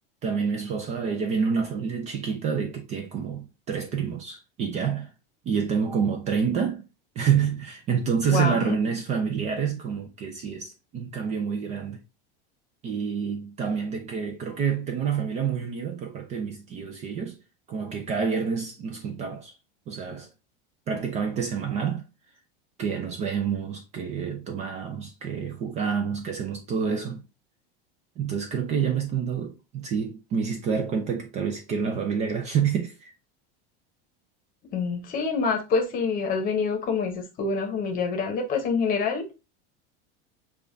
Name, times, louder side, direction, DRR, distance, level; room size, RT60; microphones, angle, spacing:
voice 1, 0.2-5.1 5.5-6.8 7.2-12.0 12.8-17.4 17.7-19.5 19.9-20.3 20.9-22.1 22.8-27.2 28.2-33.1, right 6 dB, 25° right, 0.4 m, -28 dB
voice 2, 8.3-8.7 34.7-39.4, left 5 dB, 30° left, 0.9 m, -26 dB
6.8 x 2.4 x 2.5 m
supercardioid pair, 160°, 29 cm